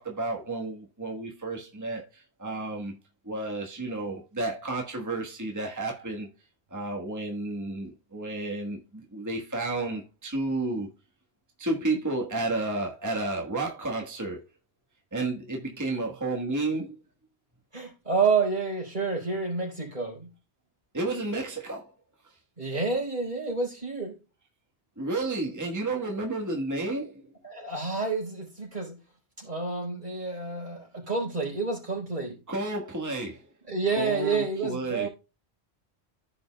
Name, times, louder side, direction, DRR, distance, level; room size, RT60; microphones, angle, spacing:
voice 1, 0.0-3.0 3.2-6.3 6.7-10.9 11.6-14.4 15.1-17.0 20.9-21.9 22.2-22.3 25.0-27.3 32.5-33.5 34.0-35.1, right 2 dB, 15° right, 1.3 m, -31 dB
voice 2, 17.7-20.3 22.6-24.1 27.4-29.0 29.4-32.4 33.7-35.1, right 4 dB, 45° right, 4.2 m, -29 dB
15.0 x 5.3 x 2.2 m
omnidirectional pair, 1.1 m